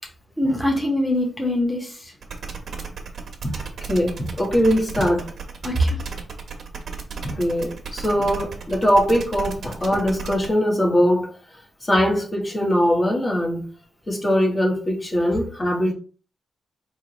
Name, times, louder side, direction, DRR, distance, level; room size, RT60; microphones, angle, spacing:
voice 1, 0.4-2.1 5.6-6.0, left 1 dB, 5° left, 1.1 m, -23 dB
sound 1, 2.2-10.5, right 5 dB, 65° right, 1.1 m, -34 dB
voice 2, 3.9-5.2 7.3-11.3 11.8-13.6 14.1-15.9, equal, 30° left, 1.2 m, -21 dB
4.4 x 3.4 x 3.0 m
cardioid pair, 90°, 0 cm